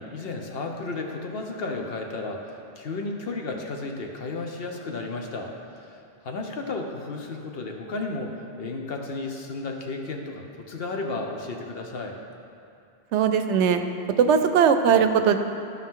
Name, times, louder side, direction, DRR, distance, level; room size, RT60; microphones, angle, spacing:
voice 1, 0.0-12.2, left 3 dB, 60° left, 2 dB, 1.0 m, -33 dB
voice 2, 13.1-13.8 14.2-15.4, right 7 dB, 85° right, 8 dB, 0.9 m, -19 dB
13.5 x 5.8 x 3.7 m, 2.6 s
omnidirectional pair, 1.2 m